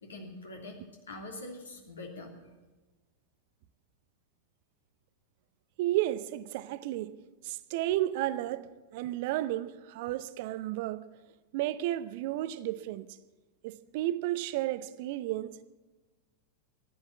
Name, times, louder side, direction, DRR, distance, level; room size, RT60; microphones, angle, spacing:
voice 1, 0.0-0.8 1.1-2.3, left 2 dB, 70° left, 2.9 m, -43 dB
voice 2, 5.8-7.1 7.4-11.1 11.5-13.1 13.6-15.6, right 14 dB, 50° right, 0.6 m, -32 dB
14.5 x 11.0 x 7.1 m
figure-of-eight pair, 90°, 0 cm